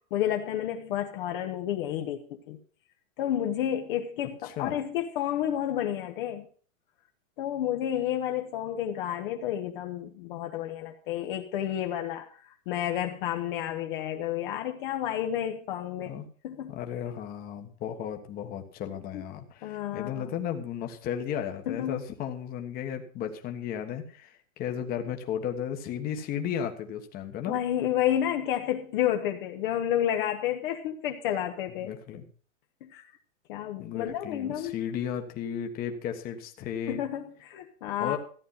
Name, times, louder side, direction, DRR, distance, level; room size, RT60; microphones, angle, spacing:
voice 1, 0.1-2.6 3.2-6.5 7.4-16.1 16.4-16.8 19.1-19.2 19.6-20.3 21.7-22.0 27.5-32.0 32.8-33.0 33.5-34.8 36.9-38.2, left 11 dB, 40° left, 4 dB, 1.2 m, -30 dB
voice 2, 4.4-4.8 16.1-16.3 16.7-27.5 31.8-32.2 33.8-37.0 38.0-38.2, left 9 dB, 20° left, 5 dB, 1.4 m, -34 dB
14.5 x 9.3 x 5.6 m, 0.43 s
supercardioid pair, 160°, 40 cm